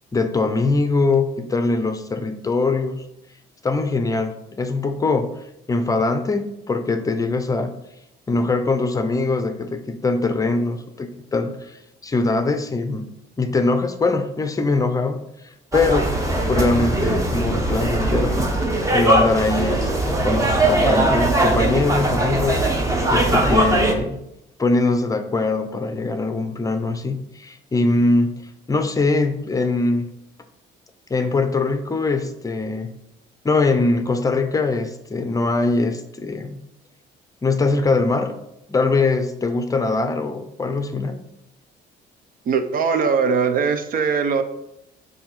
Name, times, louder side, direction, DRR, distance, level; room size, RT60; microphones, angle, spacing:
voice 1, 0.1-3.0 3.6-7.7 8.3-13.1 13.4-15.2 15.7-16.1 16.5-18.5 18.9-22.6 23.1-24.2 24.6-30.2 31.1-32.9 33.4-36.6 37.4-38.4 38.7-41.2, left 3 dB, 20° left, 8 dB, 0.6 m, -22 dB
sound 1, 15.7-23.9, right 1 dB, 20° right, 1.1 m, -20 dB
voice 2, 42.5-44.4, right 5 dB, 55° right, 8 dB, 0.8 m, -20 dB
6.9 x 2.8 x 5.7 m, 0.83 s
cardioid pair, 110°, 17 cm